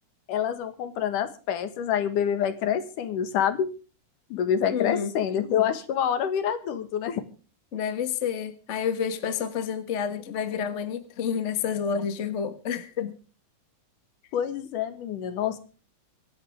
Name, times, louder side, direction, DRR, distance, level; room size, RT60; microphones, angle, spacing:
voice 1, 0.3-3.7 4.3-7.2 14.3-15.6, left 9 dB, 70° left, 3.0 m, -27 dB
voice 2, 4.7-5.1 7.7-13.1, left 7 dB, 45° left, 0.9 m, -29 dB
25.0 x 10.5 x 3.6 m
omnidirectional pair, 3.8 m